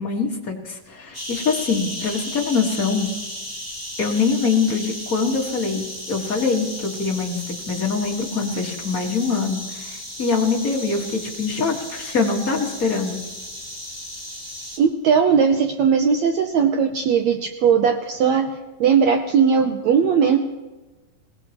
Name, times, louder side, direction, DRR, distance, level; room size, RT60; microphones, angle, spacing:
voice 1, 0.0-3.1 4.0-13.2, left 4 dB, 35° left, -2 dB, 1.5 m, -24 dB
sound 1, 1.1-14.8, left 1 dB, 10° right, 1.3 m, -35 dB
voice 2, 14.8-18.5 18.8-20.4, right 6 dB, 75° right, 4 dB, 1.6 m, -18 dB
27.0 x 17.5 x 3.0 m, 1.2 s
omnidirectional pair, 4.1 m